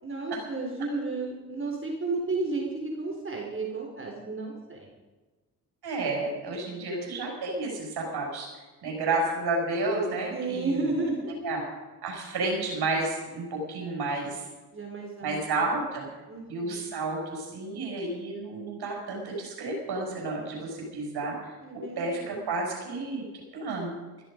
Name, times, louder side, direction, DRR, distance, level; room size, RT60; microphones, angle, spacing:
voice 1, 0.0-4.9 10.3-11.4 14.7-15.7 16.3-16.9 21.6-22.4, right 3 dB, 30° right, 1 dB, 4.1 m, -33 dB
voice 2, 5.8-10.9 11.4-11.6 12.0-14.4 15.2-16.1 16.5-21.4 21.7-23.9, right 2 dB, 65° right, -1 dB, 6.3 m, -31 dB
16.0 x 14.5 x 5.2 m, 1.3 s
supercardioid pair, 55°, 42 cm